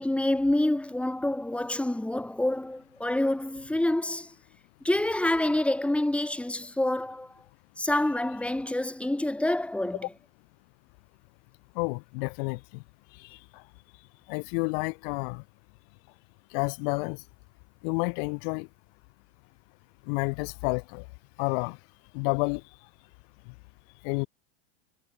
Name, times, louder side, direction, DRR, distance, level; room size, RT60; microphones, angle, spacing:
voice 1, 0.0-4.3 4.8-7.3 7.8-10.1, left 1 dB, 5° left, 6.8 m, -27 dB
voice 2, 11.8-12.8 13.2-13.4 14.3-15.4 16.5-17.2 17.8-18.7 20.1-21.0 21.4-21.8 22.1-22.6 24.0-24.3, left 34 dB, 60° left, 4.1 m, -30 dB
supercardioid pair, 140°, 33 cm